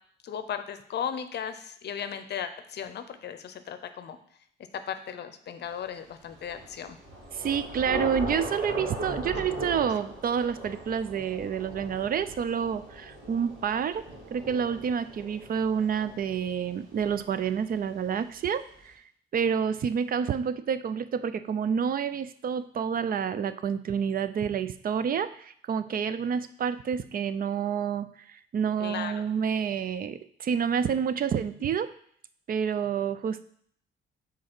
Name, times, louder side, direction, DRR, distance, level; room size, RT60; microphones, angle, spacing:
voice 1, 0.2-4.2 4.7-7.0 28.8-29.1, left 8 dB, 60° left, 10 dB, 0.6 m, -36 dB
Thunder / Rain, 6.3-17.9, right 1 dB, 70° right, 2.8 m, -39 dB
voice 2, 7.3-14.0 14.3-19.0 19.3-31.9 32.5-33.4, right 7 dB, 45° right, 13 dB, 0.5 m, -29 dB
5.2 x 4.0 x 6.0 m, 0.62 s
cardioid pair, 90°, 20 cm